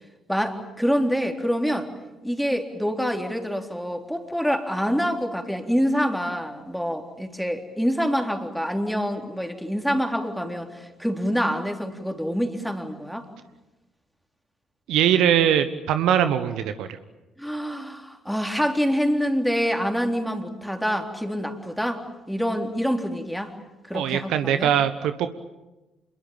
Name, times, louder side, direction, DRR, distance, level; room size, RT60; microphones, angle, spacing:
voice 1, 0.3-1.9 2.2-13.3 17.4-23.5 23.8-24.7, equal, ahead, 4 dB, 3.7 m, -26 dB
voice 2, 14.9-17.0 23.9-25.3, right 10 dB, 65° right, 10 dB, 1.2 m, -21 dB
27.5 x 22.0 x 8.8 m, 1.0 s
hypercardioid pair, 50°, 0 cm